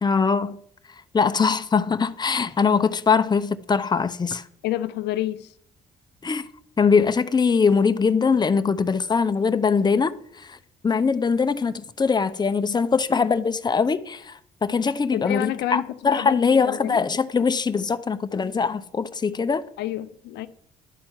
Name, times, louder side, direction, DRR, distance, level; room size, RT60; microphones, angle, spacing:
voice 1, 0.0-0.6 1.1-4.5 6.2-6.5 6.8-10.6 10.8-19.6, left 5 dB, 25° left, 0.7 m, -22 dB
voice 2, 4.6-5.5 15.1-15.8 16.2-17.0 19.8-20.5, left 14 dB, 75° left, 0.5 m, -29 dB
11.0 x 4.4 x 7.2 m
supercardioid pair, 65°, 17 cm